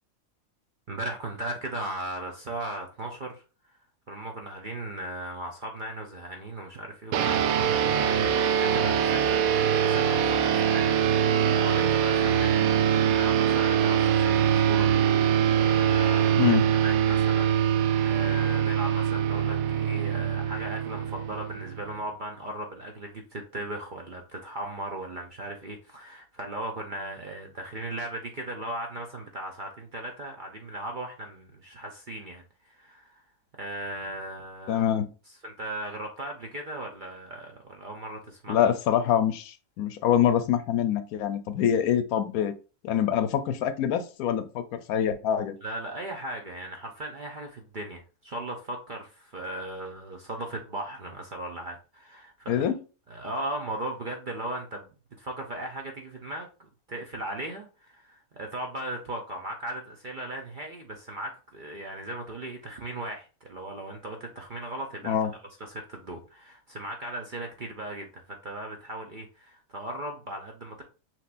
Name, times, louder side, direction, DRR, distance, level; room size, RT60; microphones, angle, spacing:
voice 1, 0.9-3.4 4.1-16.6 16.8-33.2 33.6-34.8 35.4-38.6 45.6-52.7 53.1-54.9 55.2-56.5 56.9-65.2 65.6-70.8, right 1 dB, 50° right, 0.6 m, -37 dB
sound 1, 7.1-21.9, right 9 dB, 75° right, 1.0 m, -23 dB
voice 2, 16.3-16.7 34.7-35.1 38.5-42.5 42.8-45.5 52.5-52.8 65.0-65.3, left 9 dB, 80° left, 1.1 m, -25 dB
5.9 x 3.2 x 2.5 m
omnidirectional pair, 1.5 m